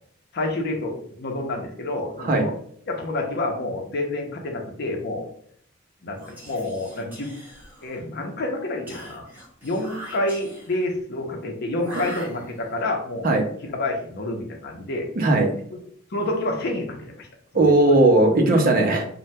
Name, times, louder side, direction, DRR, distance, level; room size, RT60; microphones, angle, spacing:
voice 1, 0.3-2.5 2.9-5.3 6.0-7.3 7.8-9.3 9.6-13.3 13.6-15.1 15.7-15.8 16.1-17.3 17.9-18.0 18.6-18.7, left 2 dB, 55° left, 2 dB, 0.6 m, -28 dB
Whispering, 6.2-8.1 8.9-10.9 11.8-12.8, equal, 10° right, 0.9 m, -42 dB
voice 2, 15.1-15.5 17.5-19.1, right 2 dB, 45° right, 2 dB, 0.5 m, -18 dB
3.2 x 2.1 x 2.7 m, 0.62 s
head